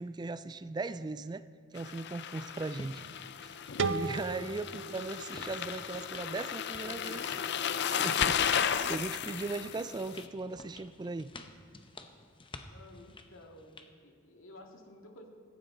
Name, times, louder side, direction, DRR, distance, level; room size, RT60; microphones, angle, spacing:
voice 1, 0.0-1.5 1.7-3.0 3.4-3.5 3.9-7.2 7.9-11.3, right 3 dB, 20° right, 14 dB, 0.3 m, -38 dB
sound 1, 1.8-10.2, left 8 dB, 60° left, 0.5 m, -34 dB
sound 2, 2.7-13.9, left 2 dB, 25° left, 0.8 m, -52 dB
sound 3, 3.8-6.6, right 4 dB, 70° right, 0.6 m, -37 dB
voice 2, 6.8-7.4 12.6-13.8 14.0-15.3, left 1 dB, 85° left, 2 dB, 2.0 m, -53 dB
17.5 x 15.0 x 3.8 m, 2.1 s
head